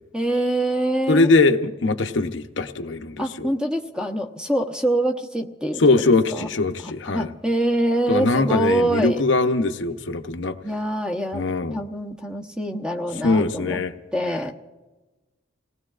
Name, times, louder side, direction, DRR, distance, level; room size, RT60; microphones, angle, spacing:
voice 1, 0.1-1.3 3.2-5.8 6.3-6.5 7.1-9.2 10.6-11.4 11.7-13.8 14.1-14.5, right 1 dB, 5° right, 3 dB, 0.9 m, -24 dB
voice 2, 1.1-3.5 5.8-7.3 8.1-10.6 11.3-11.8 13.1-13.9, left 3 dB, 65° left, 6 dB, 0.8 m, -21 dB
29.0 x 18.5 x 2.5 m, 1.2 s
head